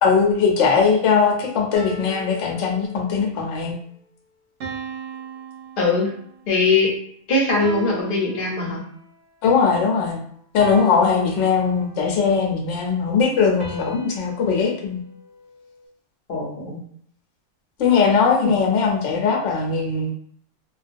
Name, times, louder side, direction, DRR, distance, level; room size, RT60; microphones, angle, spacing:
voice 1, 0.0-3.8 9.4-10.2 10.5-15.0 17.8-20.1, left 5 dB, 75° left, 1 dB, 0.9 m, -20 dB
sound 1, 1.7-3.2 4.6-6.4 7.6-9.0 10.6-12.1 13.6-15.8, right 2 dB, 70° right, 0.9 m, -37 dB
voice 2, 5.8-6.1 6.5-6.9 7.3-8.8 16.3-16.8, left 3 dB, 50° left, -2 dB, 0.8 m, -21 dB
2.3 x 2.3 x 2.5 m, 0.63 s
omnidirectional pair, 1.3 m